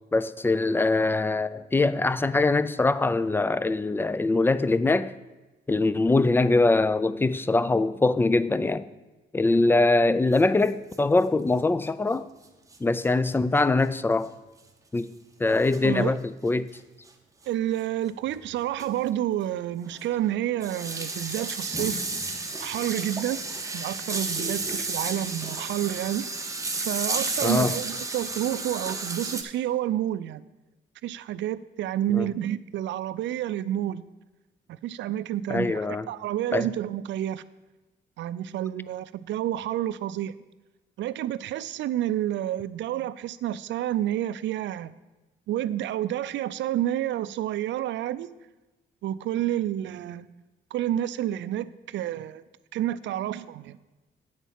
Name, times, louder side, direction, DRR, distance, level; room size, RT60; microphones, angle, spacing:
voice 1, 0.1-5.1 5.7-8.9 9.3-12.3 12.8-14.3 14.9-15.1 15.4-16.7 27.4-27.7 32.1-32.3 35.5-36.1 36.5-36.7, left 2 dB, 10° left, 0.3 m, -23 dB
sound 1, 10.3-10.4 10.7-10.8 10.9-11.0 12.7-12.8 13.0-13.1 14.2-14.3 15.7-15.9 17.1-17.2 17.8-17.9 18.3-18.4 18.8-19.0 19.3-19.4 19.9-29.4, right 3 dB, 15° right, 1.0 m, -32 dB
voice 2, 15.8-16.2 17.5-22.0 22.6-23.4 23.7-26.3 26.8-30.4 31.0-34.0 34.7-35.8 36.1-37.4 38.2-40.3 41.0-44.9 45.5-48.3 49.0-50.3 50.7-52.4 52.7-53.8, right 12 dB, 65° right, 0.4 m, -29 dB
9.4 x 4.1 x 7.3 m
cardioid pair, 90°, 20 cm